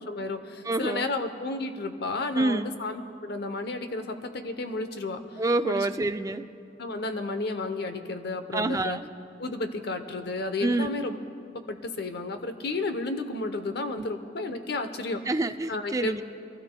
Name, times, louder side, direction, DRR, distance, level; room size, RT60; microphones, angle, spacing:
voice 1, 0.0-5.2 5.6-5.9 6.8-9.0 9.4-11.2 11.7-15.2 15.7-16.2, left 2 dB, 60° left, 8 dB, 0.8 m, -32 dB
voice 2, 0.7-1.1 2.3-2.7 5.4-6.5 8.5-9.1 10.6-10.9 14.0-14.1 15.3-16.2, right 2 dB, 20° right, 9 dB, 0.3 m, -27 dB
24.0 x 16.5 x 2.2 m, 2.6 s
head